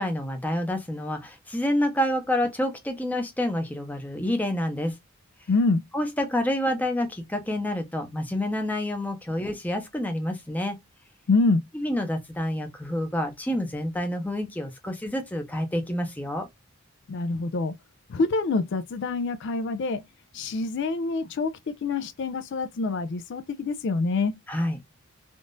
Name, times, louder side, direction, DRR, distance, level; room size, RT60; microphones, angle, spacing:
voice 1, 0.0-4.9 5.9-10.8 11.7-16.5 24.5-24.8, left 1 dB, 5° left, 0.6 m, -28 dB
voice 2, 5.5-5.8 11.3-11.6 17.1-17.7 18.1-20.0 20.3-24.3, left 3 dB, 55° left, 0.3 m, -26 dB
3.6 x 2.4 x 2.5 m
head